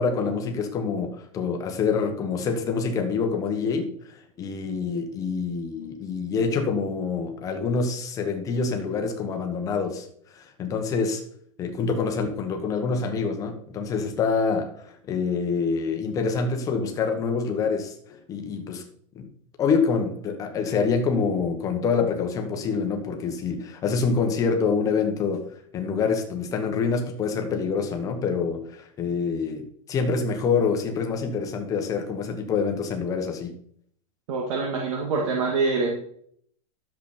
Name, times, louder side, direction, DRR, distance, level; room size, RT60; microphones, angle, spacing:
voice 1, 0.0-3.9 4.4-10.1 10.3-11.2 11.6-18.8 19.1-19.3 19.6-25.4 25.7-33.5, left 5 dB, 15° left, 5 dB, 1.2 m, -26 dB
voice 2, 34.3-35.9, right 4 dB, 55° right, 0 dB, 2.1 m, -25 dB
11.5 x 7.2 x 4.3 m, 0.64 s
supercardioid pair, 175°, 19 cm